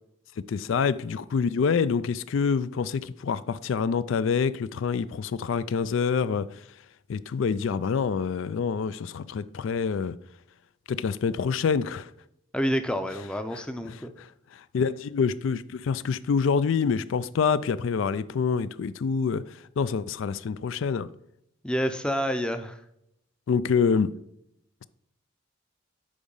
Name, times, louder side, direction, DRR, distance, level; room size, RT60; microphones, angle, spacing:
voice 1, 0.5-6.5 7.1-10.2 10.9-12.1 13.5-21.1 23.5-24.1, left 6 dB, 70° left, 0.3 m, -26 dB
voice 2, 12.5-14.1 21.6-22.8, equal, 5° left, 0.5 m, -28 dB
8.6 x 5.2 x 5.4 m
head